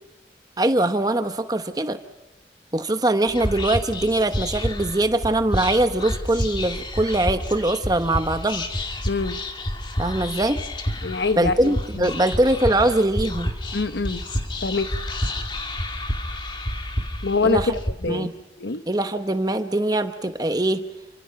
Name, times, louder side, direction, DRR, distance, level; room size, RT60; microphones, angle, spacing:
voice 1, 0.6-2.0 2.7-8.7 10.0-10.6 11.4-13.5 17.4-17.7 18.1-18.3 18.9-20.8, right 1 dB, 20° right, 9 dB, 1.0 m, -22 dB
Whispering, 3.3-17.9, left 1 dB, 25° left, 2.3 m, -29 dB
voice 2, 9.1-9.4 11.0-12.1 13.7-14.2 14.6-14.9 17.2-17.6 18.0-18.3 18.6-18.8, left 4 dB, 70° left, 10 dB, 0.9 m, -24 dB
30.0 x 25.5 x 5.9 m, 1.0 s
head